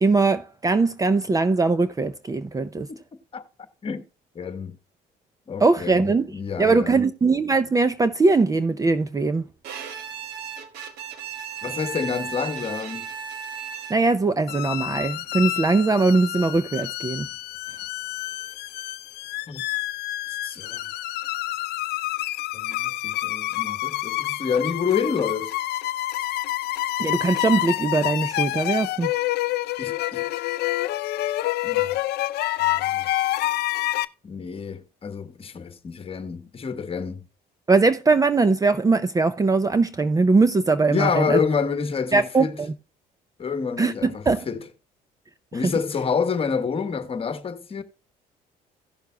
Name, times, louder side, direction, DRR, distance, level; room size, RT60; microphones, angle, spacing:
voice 1, 0.0-2.9 5.6-9.5 13.9-17.3 27.0-29.1 37.7-41.4 42.1-42.7 43.8-44.5, right 3 dB, 20° right, 0.6 m, -21 dB
voice 2, 4.3-4.8 5.5-7.0 11.6-13.1 19.5-19.6 20.3-20.8 22.5-25.5 29.8-30.3 31.6-32.0 32.6-33.1 34.2-37.2 40.9-42.6 43.4-44.6 45.5-47.8, left 6 dB, 35° left, 1.3 m, -28 dB
Bowed string instrument, 9.6-14.2, right 7 dB, 85° right, 1.4 m, -35 dB
sound 1, 14.5-34.0, left 16 dB, 75° left, 0.5 m, -28 dB
16.5 x 6.5 x 2.2 m
cardioid pair, 110°, 17 cm